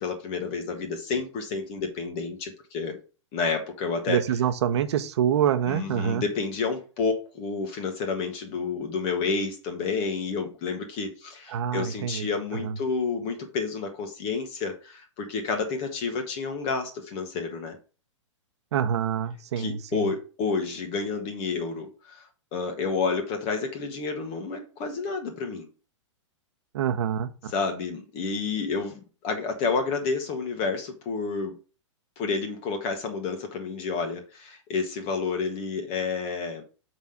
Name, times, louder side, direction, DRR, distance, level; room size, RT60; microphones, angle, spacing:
voice 1, 0.0-3.0 3.3-4.2 5.7-17.8 19.6-22.3 22.5-25.7 27.5-31.6 32.2-36.6, left 4 dB, 40° left, 1.7 m, -30 dB
voice 2, 4.1-6.2 11.5-12.8 18.7-20.1 26.7-27.5, right 9 dB, 60° right, 1.0 m, -26 dB
7.0 x 4.1 x 5.2 m
figure-of-eight pair, 110°, 16 cm